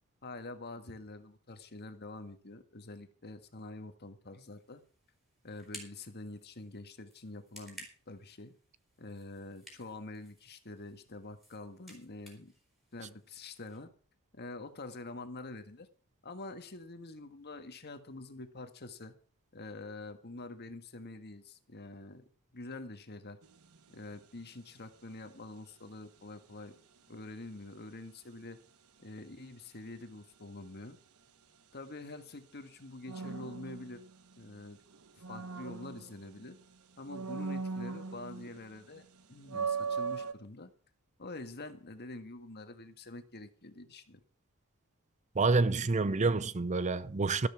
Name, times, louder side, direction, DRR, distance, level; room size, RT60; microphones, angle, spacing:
voice 1, 0.2-4.8 5.4-8.5 9.0-12.5 12.9-13.9 14.3-15.9 16.2-19.1 19.5-22.2 22.5-23.4 23.9-26.8 27.1-28.6 29.0-31.0 31.7-34.0 34.4-34.8 35.3-36.6 37.0-40.7 41.2-44.2, left 2 dB, 50° left, 1.6 m, -46 dB
sound 1, 4.6-13.8, equal, ahead, 5.5 m, -56 dB
sound 2, 23.4-23.8 33.1-34.5 34.9-36.6 37.1-38.6 39.0-39.1 39.5-40.3, right 5 dB, 80° right, 1.0 m, -38 dB
voice 2, 45.4-47.5, right 3 dB, 30° right, 0.6 m, -28 dB
13.0 x 13.0 x 4.8 m
head